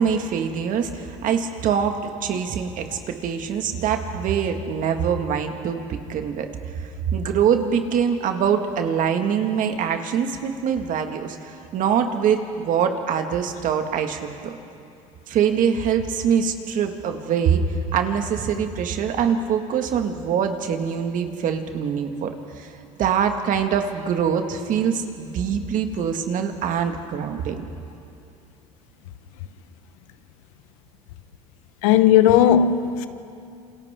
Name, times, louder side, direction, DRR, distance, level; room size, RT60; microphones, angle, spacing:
voice 1, 0.0-6.5 7.1-11.4 11.7-14.6 15.3-17.6 17.9-22.3 22.6-22.7 23.0-27.6, right 7 dB, 55° right, 1.9 m, -23 dB
voice 2, 31.8-33.1, left 10 dB, 80° left, 1.1 m, -16 dB
28.0 x 27.0 x 3.7 m
hypercardioid pair, 85°, 17 cm